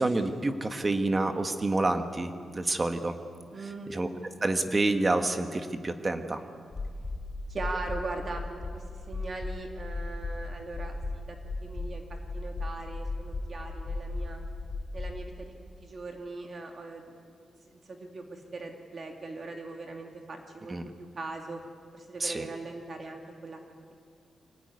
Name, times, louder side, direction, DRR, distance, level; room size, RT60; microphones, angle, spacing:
voice 1, 0.0-3.2 3.9-4.1 4.4-6.4 20.7-20.9 22.2-22.5, right 2 dB, 20° right, 7 dB, 1.5 m, -28 dB
voice 2, 3.5-3.9 7.5-12.0 12.3-14.4 14.9-15.5 15.8-17.3 17.9-21.6 21.9-23.6, right 3 dB, 40° right, 2 dB, 2.4 m, -40 dB
sound 1, 6.7-15.2, left 2 dB, 40° left, 3.7 m, -36 dB
24.5 x 18.0 x 9.6 m, 2.2 s
wide cardioid pair, 145°, 0 cm